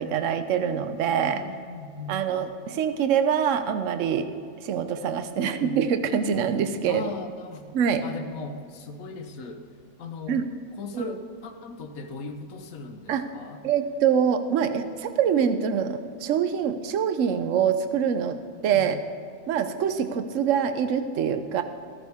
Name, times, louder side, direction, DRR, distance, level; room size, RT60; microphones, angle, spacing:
voice 1, 0.0-1.4 2.1-4.3 4.6-7.1 7.7-8.0 10.3-10.4 10.9-11.1 13.1-13.2 13.6-18.4 18.6-19.0 19.5-21.6, right 8 dB, 65° right, 9 dB, 1.0 m, -25 dB
voice 2, 1.3-2.1 5.3-5.8 6.9-7.6 8.0-9.6 10.0-10.4 10.7-13.6 18.7-18.9, left 4 dB, 70° left, 4 dB, 1.4 m, -38 dB
14.0 x 14.0 x 3.6 m, 2.3 s
omnidirectional pair, 1.6 m